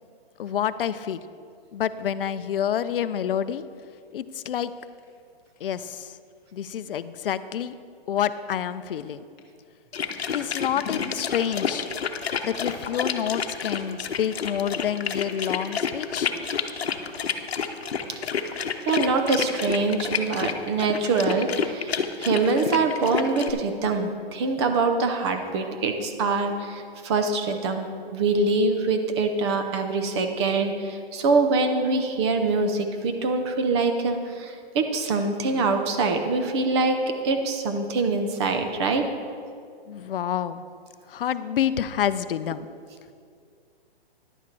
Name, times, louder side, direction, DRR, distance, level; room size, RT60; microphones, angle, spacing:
voice 1, 0.4-1.2 1.7-3.6 4.1-4.7 5.6-6.2 6.5-7.7 8.1-9.2 10.3-11.9 12.4-16.3 39.9-40.6 41.1-42.6, left 9 dB, 65° left, 14 dB, 0.6 m, -28 dB
Scissors, 3.4-9.5 10.1-11.2, left 5 dB, 20° left, 0.6 m, -44 dB
sound 1, 9.9-23.5, left 6 dB, 85° left, 0.9 m, -29 dB
voice 2, 18.8-39.1, right 3 dB, 25° right, 6 dB, 0.8 m, -24 dB
11.0 x 8.3 x 4.7 m, 2.3 s
hypercardioid pair, 150°, 30 cm